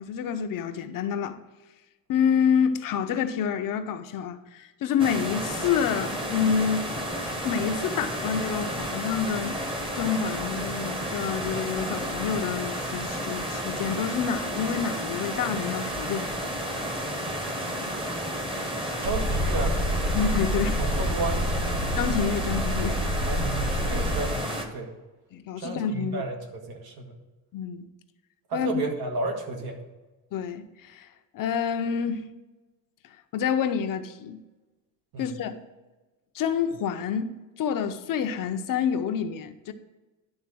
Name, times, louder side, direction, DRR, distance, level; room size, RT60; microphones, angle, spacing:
voice 1, 0.0-1.4 2.1-6.9 7.4-9.6 9.9-16.3 20.1-20.8 22.0-23.0 25.3-26.2 27.5-27.9 28.5-28.8 30.3-31.1 31.3-32.2 33.3-34.4 35.2-35.6 36.3-39.7, left 7 dB, 65° left, 0.7 m, -28 dB
sound 1, 5.0-24.7, equal, 15° right, 0.9 m, -32 dB
Boat Water vehicle, 19.0-24.2, equal, 65° right, 2.1 m, -28 dB
voice 2, 19.0-19.8 20.8-21.4 23.3-24.9 25.6-27.2 28.5-29.8 35.1-35.3, right 3 dB, 90° right, 1.7 m, -32 dB
11.0 x 4.0 x 6.0 m
cardioid pair, 180°, 36 cm